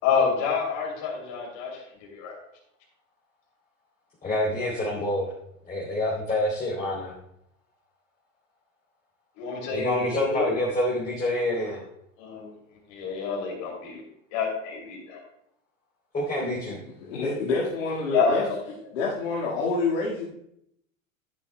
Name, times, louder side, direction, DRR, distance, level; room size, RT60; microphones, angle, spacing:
voice 1, 0.0-2.3 9.4-10.5 12.2-12.5 12.9-14.0 14.3-15.2 18.1-18.6, left 5 dB, 55° left, -2 dB, 3.0 m, -28 dB
voice 2, 4.2-5.3 5.7-7.1 9.7-11.8 16.1-16.8, left 1 dB, 20° left, -6 dB, 3.2 m, -27 dB
voice 3, 17.0-18.4 18.9-20.2, left 3 dB, 75° left, -6 dB, 2.0 m, -27 dB
11.5 x 10.5 x 2.3 m, 0.75 s
hypercardioid pair, 95°, 40 cm